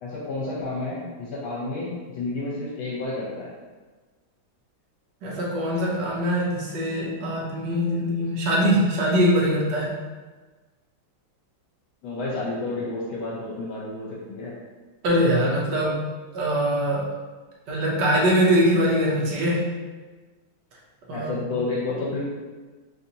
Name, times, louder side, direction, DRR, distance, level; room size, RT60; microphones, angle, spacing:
voice 1, 0.0-3.5 12.0-14.5 21.1-22.2, left 2 dB, 80° left, -6 dB, 1.5 m, -30 dB
voice 2, 5.2-9.9 15.0-15.9 16.3-17.1 17.7-19.7 21.1-21.4, equal, 65° right, -4 dB, 1.3 m, -22 dB
4.0 x 2.6 x 2.8 m, 1.3 s
omnidirectional pair, 2.3 m